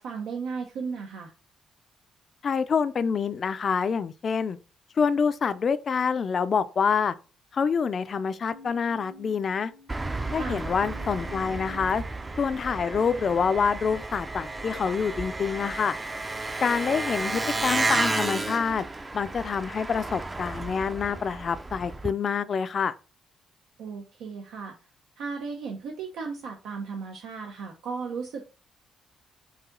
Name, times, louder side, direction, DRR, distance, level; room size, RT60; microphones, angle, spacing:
voice 1, 0.0-1.3 10.4-10.6 23.8-24.7 25.2-28.4, right 5 dB, 85° right, 0.7 m, -35 dB
voice 2, 2.4-4.6 5.0-7.1 7.5-9.7 10.3-12.0 12.4-16.0 16.6-18.8 19.1-22.9, left 6 dB, 45° left, 0.3 m, -26 dB
sound 1, 8.5-15.9 16.5-17.0, left 3 dB, 85° left, 0.8 m, -51 dB
Engine, 9.9-22.1, right 2 dB, 20° right, 0.4 m, -32 dB
4.8 x 2.7 x 3.7 m
cardioid pair, 90°, 0 cm